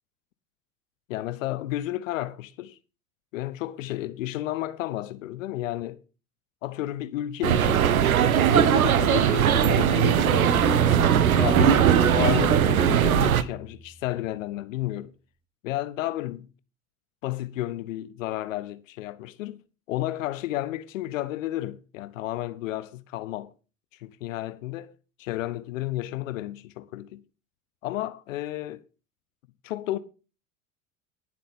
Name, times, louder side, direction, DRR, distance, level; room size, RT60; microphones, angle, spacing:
voice 1, 1.1-2.8 3.3-6.0 6.6-7.9 8.5-11.9 12.2-15.1 15.6-16.5 17.2-19.6 19.9-23.5 24.0-24.9 25.2-27.2 27.8-28.8 29.6-30.0, left 15 dB, 60° left, 0.8 m, -32 dB
sound 1, 7.4-13.4, right 9 dB, 75° right, 0.9 m, -20 dB
sound 2, 9.5-13.9, right 3 dB, 10° right, 0.8 m, -31 dB
19.5 x 7.7 x 3.7 m
figure-of-eight pair, 70°, 43 cm